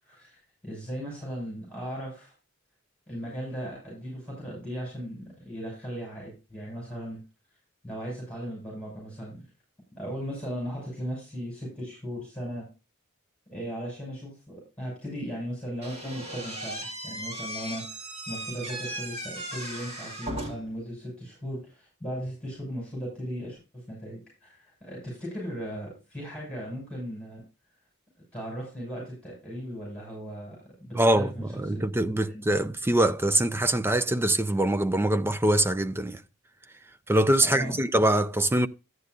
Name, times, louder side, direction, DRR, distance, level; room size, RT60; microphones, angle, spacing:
voice 1, 0.0-2.3 3.1-7.2 7.8-9.4 10.0-12.7 13.5-27.4 28.3-31.8 32.2-32.4 37.4-37.8, equal, 5° left, 6.7 m, -37 dB
Slam / Squeak, 15.8-20.8, right 1 dB, 30° right, 3.1 m, -37 dB
voice 2, 31.0-31.3 31.7-36.2 37.1-38.7, right 1 dB, 10° right, 0.4 m, -23 dB
13.0 x 9.4 x 2.5 m
head